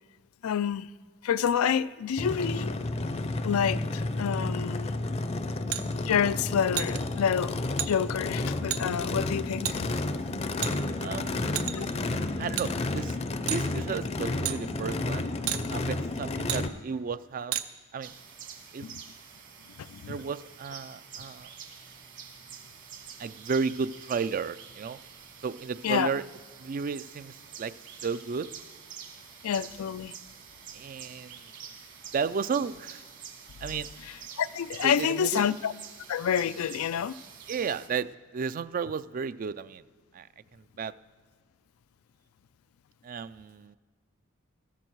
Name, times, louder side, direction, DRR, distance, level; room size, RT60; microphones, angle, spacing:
voice 1, 0.4-0.9 1.2-2.8 3.4-4.9 6.1-10.7 11.7-11.9 18.8-19.0 19.8-20.2 25.8-26.1 29.4-30.1 34.4-35.7 36.1-37.1, left 8 dB, 80° left, 16 dB, 0.4 m, -28 dB
Race car auto racing / Idling / Accelerating revving vroom, 2.2-16.7, left 2 dB, 30° left, 0.5 m, -31 dB
sound 1, 5.7-5.8 6.8-7.0 7.8-7.9 8.7-8.8 9.6-9.8 10.6-11.1 11.6-11.9 12.6-12.7 13.5-13.7 14.4-14.6 15.5-15.6 16.5-16.6 17.5-17.7, right 12 dB, 75° right, 0.6 m, -30 dB
voice 2, 11.0-11.7 12.4-13.2 13.5-15.3 15.7-17.5 17.9-18.1 18.7-18.9 20.1-21.5 23.2-25.0 25.4-26.2 26.6-27.7 28.0-28.5 30.7-31.4 32.1-33.0 33.6-33.9 34.8-35.5 37.5-39.8 40.1-40.3 40.5-40.9 43.0-43.8, right 5 dB, 40° right, 15 dB, 0.3 m, -33 dB
sound 2, 18.0-37.9, right 7 dB, 60° right, 1.7 m, -47 dB
14.5 x 14.0 x 4.6 m, 1.6 s
head